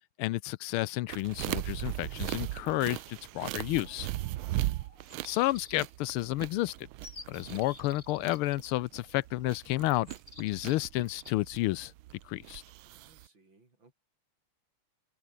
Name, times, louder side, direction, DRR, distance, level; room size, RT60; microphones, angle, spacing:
voice 1, 0.2-4.1 5.2-6.7 7.3-10.1 10.4-11.9 12.3-12.6, left 17 dB, 80° left, 1.5 m, -31 dB
sound 1, 1.1-13.3, right 16 dB, 80° right, 1.4 m, -38 dB
sound 2, 3.8-5.1, left 3 dB, 55° left, 5.3 m, -61 dB
voice 2, 4.3-4.9 12.8-13.9, right 3 dB, 60° right, 6.5 m, -63 dB
sound 3, 5.1-6.1 7.0-8.7 10.1-11.3, left 3 dB, 25° left, 2.9 m, -50 dB
open air
omnidirectional pair, 2.4 m